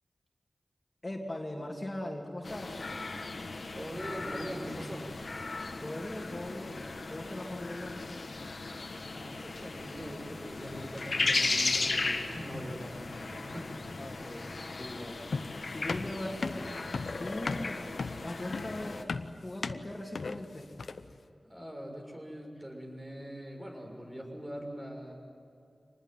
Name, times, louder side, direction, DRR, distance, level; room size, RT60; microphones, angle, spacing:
voice 1, 1.0-2.9 5.8-8.0 14.0-15.2 15.7-16.8 17.2-17.8 18.2-19.1 19.4-20.7, left 1 dB, 35° left, 0 dB, 2.9 m, -40 dB
sound 1, 2.4-19.0, left 3 dB, 70° left, 1.6 m, -36 dB
voice 2, 3.7-5.1 9.1-13.8 21.5-25.1, equal, 25° right, 1 dB, 6.4 m, -42 dB
sound 2, 15.3-21.2, left 4 dB, 90° left, 0.8 m, -36 dB
25.5 x 20.0 x 9.4 m, 2.6 s
cardioid pair, 45°, 0 cm